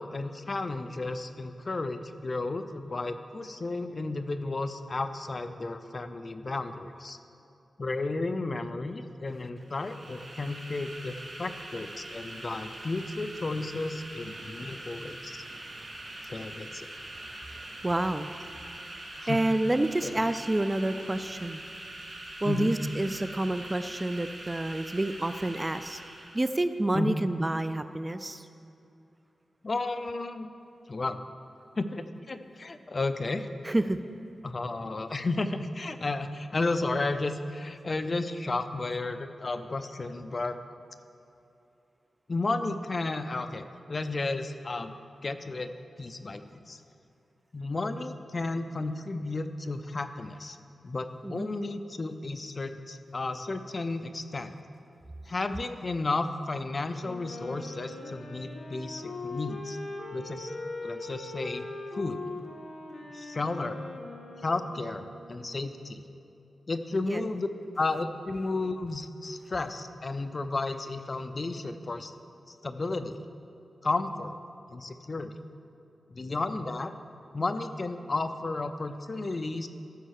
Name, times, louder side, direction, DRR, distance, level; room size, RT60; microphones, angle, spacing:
voice 1, 0.0-7.2 7.8-15.4 16.3-16.9 19.2-19.4 20.0-20.1 22.4-22.7 26.9-27.2 29.6-30.5 30.9-31.2 31.8-33.5 34.4-40.6 42.3-45.0 45.2-45.7 46.0-46.8 47.5-50.6 50.8-54.5 55.3-59.8 60.1-60.5 60.8-61.6 61.9-62.2 63.1-63.8 64.4-66.0 66.7-67.5 67.8-72.1 72.5-73.2 73.8-74.3 74.7-75.4 76.1-76.9 77.3-79.7, left 3 dB, 40° left, 9 dB, 0.5 m, -33 dB
sound 1, 9.6-26.5, right 1 dB, 60° right, 2.7 m, -43 dB
voice 2, 14.6-16.3 16.9-18.6 18.9-21.6 22.4-26.0 26.3-28.5 33.6-34.0 51.2-51.5 67.1-67.2, right 1 dB, 20° right, 11 dB, 0.3 m, -30 dB
Wind instrument woodwind instrument, 57.0-65.4, left 2 dB, 60° left, 1.4 m, -41 dB
14.0 x 5.5 x 6.5 m, 2.7 s
wide cardioid pair, 110°, 0 cm